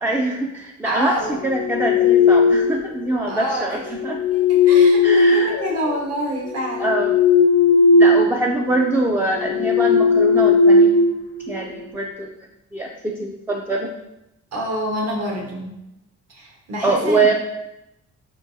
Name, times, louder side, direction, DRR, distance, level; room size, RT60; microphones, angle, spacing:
voice 1, 0.0-1.2 1.4-4.2 5.0-5.6 6.8-7.2 8.0-10.9 11.5-12.3 12.7-13.9 16.8-17.3, right 2 dB, 10° right, 1 dB, 0.3 m, -23 dB
voice 2, 0.8-1.4 3.3-3.8 4.3-6.9 14.5-15.7 16.3-17.3, equal, 55° right, -1 dB, 1.3 m, -27 dB
sound 1, 1.4-2.9 3.9-6.0 6.5-8.3 8.6-8.8 9.3-11.7, left 4 dB, 50° left, 0.5 m, -16 dB
4.6 x 3.7 x 2.7 m, 0.89 s
cardioid pair, 90°, 30 cm